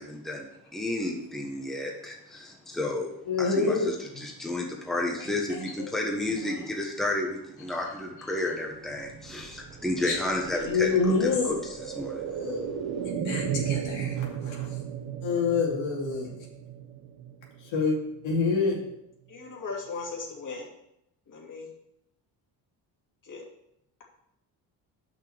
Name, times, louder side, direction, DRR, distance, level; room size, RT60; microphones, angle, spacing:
voice 1, 0.0-3.1 3.4-3.7 4.2-10.9 11.2-11.6 12.0-12.3 13.0-13.1, left 1 dB, ahead, 0 dB, 1.1 m, -32 dB
voice 2, 3.2-4.2 5.2-5.9 6.4-6.6 7.7-8.0 8.2-8.5 10.0-10.2 10.4-11.6 12.2-12.8 13.0-14.8 15.2-16.5 17.6-18.0 18.2-18.8, left 4 dB, 90° left, -2 dB, 2.7 m, -28 dB
sound 1, 8.6-18.4 18.7-18.8, right 8 dB, 75° right, 1.1 m, -35 dB
voice 3, 19.3-20.7 21.3-21.7 23.2-23.4, left 4 dB, 45° left, -2 dB, 2.4 m, -37 dB
6.1 x 5.6 x 6.9 m, 0.81 s
cardioid pair, 135°, 44 cm